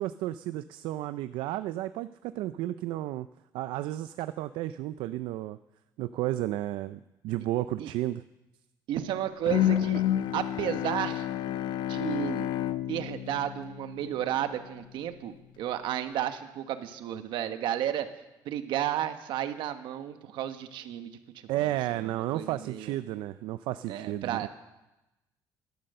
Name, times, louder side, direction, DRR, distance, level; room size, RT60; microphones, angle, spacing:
voice 1, 0.0-3.3 3.5-5.6 6.0-8.2 21.5-24.5, right 14 dB, 90° right, 13 dB, 0.4 m, -32 dB
voice 2, 8.9-10.0 10.3-11.3 11.9-12.5 12.9-18.1 18.4-21.2 21.5-21.6 21.9-22.9 23.9-24.5, right 11 dB, 75° right, 9 dB, 1.2 m, -32 dB
Bowed string instrument, 9.5-14.5, left 11 dB, 65° left, 0.6 m, -30 dB
14.5 x 12.0 x 6.6 m, 0.99 s
cardioid pair, 135°, 8 cm